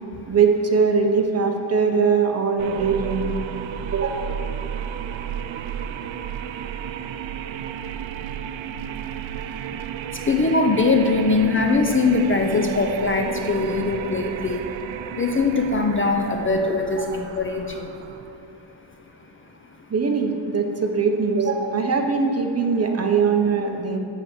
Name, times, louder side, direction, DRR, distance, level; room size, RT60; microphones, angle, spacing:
voice 1, 0.3-3.4 3.9-4.3 17.0-17.1 19.9-24.0, right 5 dB, 35° right, 4 dB, 0.8 m, -21 dB
sound 1, 2.6-18.5, right 9 dB, 85° right, 0.5 m, -33 dB
voice 2, 10.1-14.7 15.1-17.9, left 3 dB, 30° left, 3 dB, 0.5 m, -21 dB
7.9 x 7.6 x 6.0 m, 2.9 s
wide cardioid pair, 155°, 44 cm